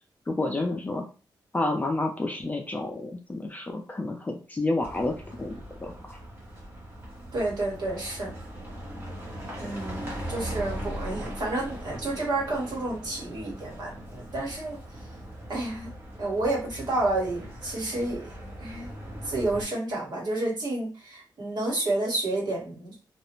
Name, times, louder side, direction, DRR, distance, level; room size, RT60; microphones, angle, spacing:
voice 1, 0.3-1.0 1.5-6.2, left 2 dB, 20° left, 2 dB, 0.5 m, -30 dB
sound 1, 4.8-19.6, right 1 dB, 30° right, 0.9 m, -39 dB
voice 2, 7.3-8.3 9.6-14.8 15.5-15.9 16.2-18.3 18.6-18.9 19.2-22.9, right 2 dB, 65° right, -3 dB, 1.3 m, -30 dB
2.4 x 2.0 x 3.0 m, 0.35 s
wide cardioid pair, 145°, 8 cm